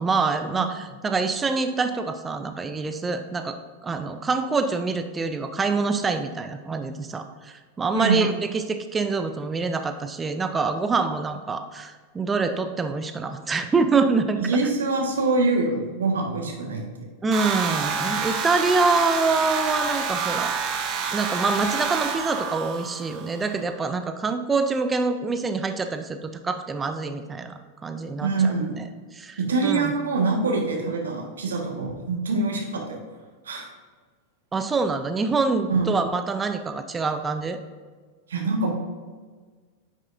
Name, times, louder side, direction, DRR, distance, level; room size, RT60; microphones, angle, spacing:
voice 1, 0.0-14.4 17.2-20.5 21.1-28.8 29.1-30.0 34.5-37.6, right 4 dB, 15° right, 8 dB, 0.5 m, -25 dB
voice 2, 14.3-16.8 28.2-28.9 29.4-33.0 33.4-33.7 35.7-35.9 38.3-38.7, right 3 dB, 65° right, 1 dB, 1.4 m, -24 dB
sound 1, 17.3-23.5, right 6 dB, 35° right, 1.1 m, -28 dB
9.8 x 6.2 x 2.6 m, 1.5 s
figure-of-eight pair, 90°, 0 cm